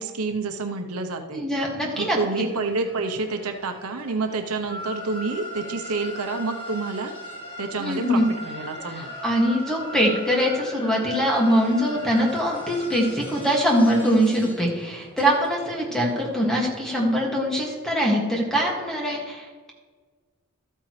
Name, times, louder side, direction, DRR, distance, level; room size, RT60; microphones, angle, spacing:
voice 1, 0.0-1.5 2.0-7.1 7.6-9.1, right 3 dB, 80° right, 5 dB, 0.9 m, -28 dB
voice 2, 1.3-2.4 7.8-8.3 9.0-19.7, equal, 5° left, -3 dB, 2.0 m, -23 dB
sound 1, 1.9-17.2, equal, 20° left, 2.0 m, -39 dB
13.0 x 9.0 x 3.2 m, 1.4 s
head